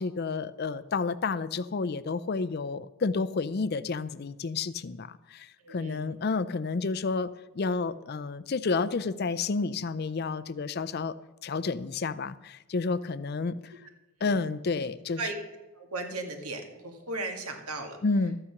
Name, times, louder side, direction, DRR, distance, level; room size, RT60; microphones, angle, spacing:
voice 1, 0.0-7.3 7.5-11.1 11.4-13.7 14.2-15.2 18.0-18.4, left 4 dB, 45° left, 14 dB, 0.4 m, -30 dB
voice 2, 5.6-6.2 14.2-14.4 14.8-14.9 15.2-15.3 15.8-18.0, right 2 dB, 85° right, 4 dB, 2.0 m, -36 dB
13.0 x 8.7 x 5.8 m, 1.1 s
head